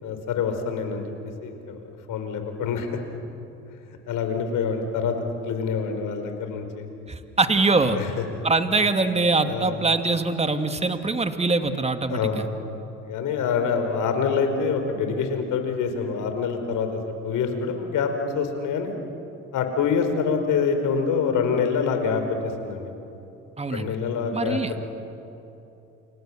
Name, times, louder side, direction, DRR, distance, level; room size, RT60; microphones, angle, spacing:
voice 1, 0.0-1.1 1.4-1.8 2.1-2.9 4.1-5.2 5.5-6.9 7.9-8.2 9.5-9.8 12.1-12.4 13.0-18.9 19.5-22.9 23.7-24.6, left 6 dB, 60° left, 6 dB, 4.7 m, -26 dB
voice 2, 7.1-8.0 8.4-12.4 23.6-23.9 24.3-24.7, right 3 dB, 20° right, 8 dB, 2.3 m, -23 dB
29.0 x 27.0 x 7.6 m, 2.9 s
hypercardioid pair, 65°, 35 cm